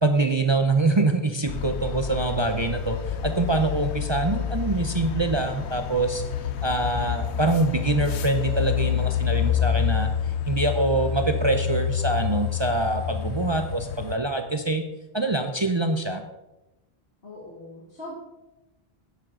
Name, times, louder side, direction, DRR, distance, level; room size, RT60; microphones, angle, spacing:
voice 1, 0.0-6.2 6.6-14.8 15.1-16.2, right 2 dB, 30° right, 6 dB, 0.6 m, -24 dB
sound 1, 1.5-14.2, left 9 dB, 90° left, 1.0 m, -28 dB
voice 2, 17.2-18.1, left 1 dB, 60° left, -6 dB, 2.6 m, -40 dB
11.5 x 10.5 x 3.8 m, 1.0 s
omnidirectional pair, 1.1 m